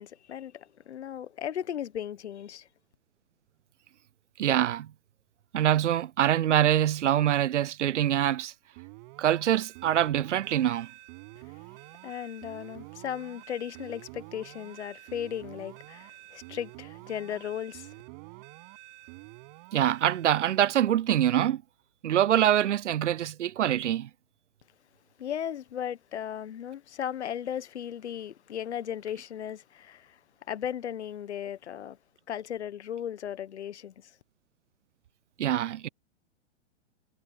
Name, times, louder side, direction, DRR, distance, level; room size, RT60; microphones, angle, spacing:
voice 1, 0.0-2.7 12.0-17.9 25.2-30.2 30.5-32.0 32.3-34.1, left 9 dB, 70° left, 1.3 m, -36 dB
voice 2, 4.4-4.9 5.5-8.5 9.2-10.9 19.7-21.6 22.0-24.1 35.4-35.9, right 11 dB, 80° right, 0.5 m, -24 dB
sound 1, 8.8-20.9, right 29 dB, 40° right, 7.3 m, -48 dB
hypercardioid pair, 120°, 35 cm